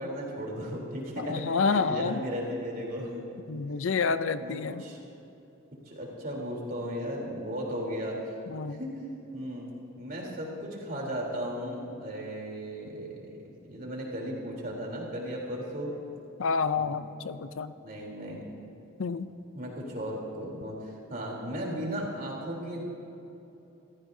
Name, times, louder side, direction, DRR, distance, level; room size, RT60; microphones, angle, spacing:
voice 1, 0.0-3.2 4.4-5.0 5.8-8.2 8.7-8.9 9.3-9.7 9.9-13.3 13.7-15.9 16.7-17.0 17.8-18.7 19.5-22.8, equal, 45° right, -2 dB, 3.4 m, -36 dB
voice 2, 1.3-2.2 3.5-4.8 8.5-8.8 16.4-17.7 19.0-19.3, left 5 dB, 70° left, 12 dB, 0.5 m, -28 dB
26.0 x 15.0 x 2.7 m, 3.0 s
head